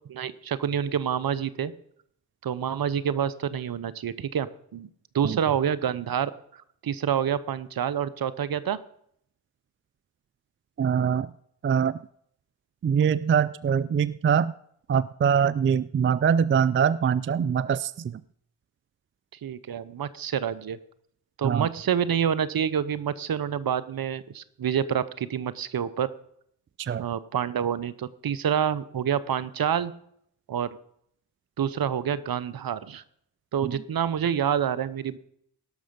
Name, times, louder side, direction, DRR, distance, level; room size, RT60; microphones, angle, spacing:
voice 1, 0.1-1.7 2.4-4.9 5.1-6.3 6.8-8.8 19.4-20.8 21.4-26.1 27.0-29.9 30.5-30.7 31.6-33.0 33.5-35.2, right 8 dB, 60° right, 16 dB, 0.9 m, -27 dB
voice 2, 10.8-11.3 11.6-12.0 12.8-14.5 14.9-18.2 21.4-21.7 26.8-27.0 33.6-33.8, right 7 dB, 30° right, 18 dB, 0.4 m, -23 dB
18.0 x 6.3 x 5.4 m, 0.69 s
supercardioid pair, 40°, 42 cm